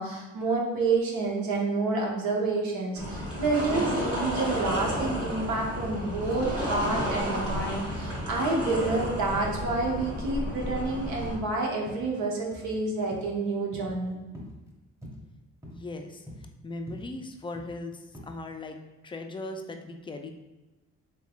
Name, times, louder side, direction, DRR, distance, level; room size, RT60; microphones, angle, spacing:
voice 1, 0.0-14.2, right 3 dB, 80° right, -1 dB, 0.9 m, -29 dB
sound 1, 3.0-11.3, equal, 50° right, 1.3 m, -32 dB
sound 2, 5.6-5.9 6.3-6.5 6.9-7.1 7.5-7.8 8.1-8.3 8.8-9.0 9.4-9.6 10.0-10.2 10.6-10.9 11.3-11.5 11.9-12.1 12.5-12.7 13.1-13.4 13.7-14.0 14.3-14.6 15.0-15.2 15.6-15.8 16.3-16.5 16.9-17.1 17.5-17.8 18.1-18.2, equal, 10° right, 0.9 m, -44 dB
voice 2, 15.6-16.3 16.6-18.8 19.0-20.3, left 2 dB, 15° left, 5 dB, 0.3 m, -38 dB
3.6 x 3.2 x 2.4 m, 1.1 s
cardioid pair, 90°, 30 cm